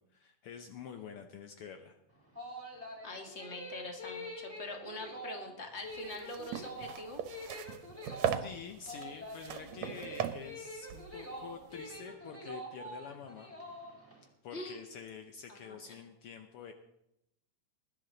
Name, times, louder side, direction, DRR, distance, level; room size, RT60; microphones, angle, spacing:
voice 1, 0.0-2.0 8.2-13.5 14.4-16.7, left 7 dB, 80° left, 6 dB, 1.2 m, -47 dB
sound 1, 2.1-14.2, equal, 5° left, 2.6 m, -46 dB
voice 2, 3.0-7.2 14.5-14.8 15.5-16.0, left 2 dB, 30° left, 3 dB, 1.5 m, -44 dB
sound 2, 5.9-12.0, right 9 dB, 70° right, 1.9 m, -39 dB
21.5 x 11.0 x 3.9 m, 0.84 s
omnidirectional pair, 3.6 m